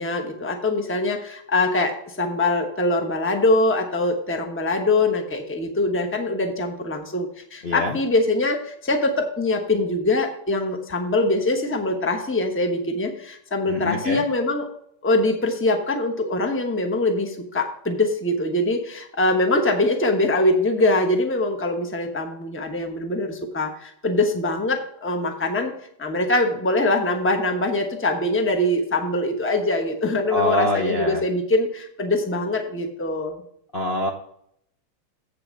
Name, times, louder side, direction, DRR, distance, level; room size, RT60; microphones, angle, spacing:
voice 1, 0.0-14.7 15.0-33.4, left 2 dB, 15° left, 4 dB, 0.4 m, -23 dB
voice 2, 7.6-8.0 13.7-14.2 30.3-31.2 33.7-34.1, left 1 dB, 85° left, 1 dB, 0.4 m, -24 dB
8.0 x 6.9 x 5.3 m, 0.68 s
omnidirectional pair, 2.4 m